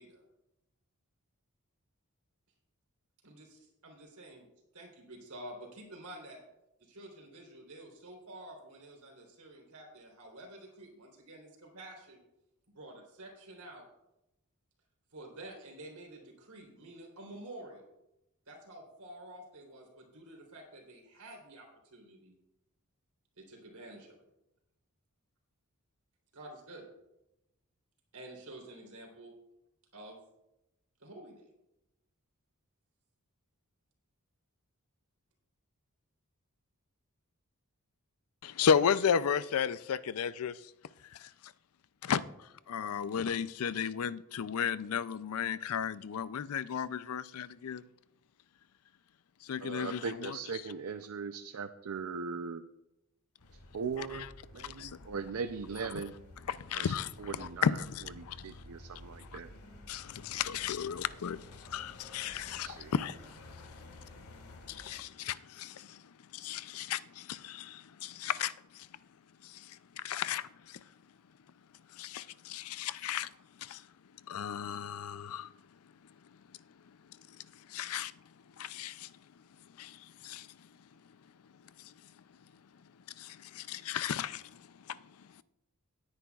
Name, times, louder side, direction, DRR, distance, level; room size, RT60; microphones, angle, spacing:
voice 1, 3.2-4.5 4.7-6.4 6.8-12.3 12.7-13.9 15.1-17.9 18.5-22.3 23.4-24.2 26.3-26.9 28.1-29.3 29.9-30.2 31.0-31.5, right 1 dB, 90° right, 3.6 m, -49 dB
voice 2, 38.4-40.6 41.1-41.5 42.0-42.2 42.7-47.8 49.4-50.6 54.0-54.3 54.6-55.0 56.5-58.6 59.3-59.4 59.9-64.3 64.7-66.0 66.3-68.9 69.4-70.8 71.9-73.3 73.6-73.8 74.3-75.5 77.7-78.1 78.6-79.1 79.8-80.5 81.8-81.9 83.2-85.0, left 7 dB, 70° left, 0.4 m, -34 dB
voice 3, 49.6-52.6 53.7-54.3 54.5-56.1 56.7-56.9 57.2-57.7 58.2-59.5 62.6-62.9, right 5 dB, 70° right, 0.5 m, -39 dB
sound 1, 53.4-64.9, left 1 dB, 85° left, 2.0 m, -53 dB
17.5 x 9.9 x 2.4 m
head